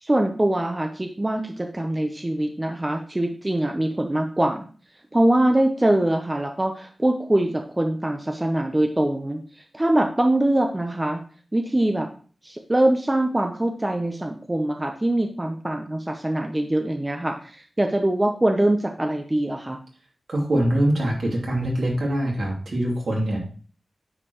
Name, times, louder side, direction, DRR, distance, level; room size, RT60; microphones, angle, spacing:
voice 1, 0.0-4.6 5.1-11.2 11.5-12.1 12.4-19.8, right 1 dB, 20° right, 4 dB, 0.7 m, -23 dB
voice 2, 20.3-23.4, right 1 dB, 70° right, -2 dB, 2.7 m, -23 dB
9.7 x 5.0 x 3.0 m, 0.41 s
wide cardioid pair, 90°, 0 cm